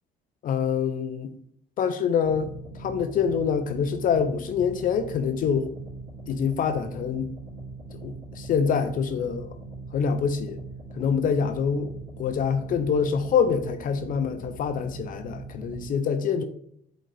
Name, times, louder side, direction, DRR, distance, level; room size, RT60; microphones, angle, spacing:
voice 1, 0.4-1.3 1.8-2.5 2.8-5.7 6.3-7.3 7.9-9.6 9.9-10.6 10.9-11.9 12.2-16.4, left 6 dB, 55° left, 0.6 m, -25 dB
sound 1, 2.2-15.8, right 3 dB, 50° right, 2.8 m, -41 dB
7.6 x 4.0 x 3.4 m
cardioid pair, 110°, 17 cm